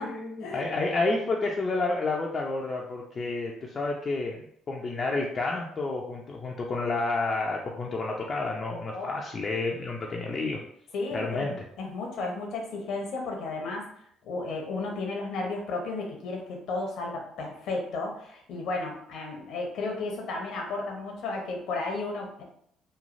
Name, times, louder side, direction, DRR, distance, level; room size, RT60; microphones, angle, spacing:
voice 1, 0.0-4.4 4.7-10.6 11.1-11.5, left 3 dB, 40° left, -1 dB, 0.4 m, -30 dB
voice 2, 10.9-13.9 14.2-22.4, left 3 dB, 70° left, 1 dB, 0.8 m, -33 dB
3.1 x 2.3 x 2.5 m, 0.69 s
hypercardioid pair, 60°, 0 cm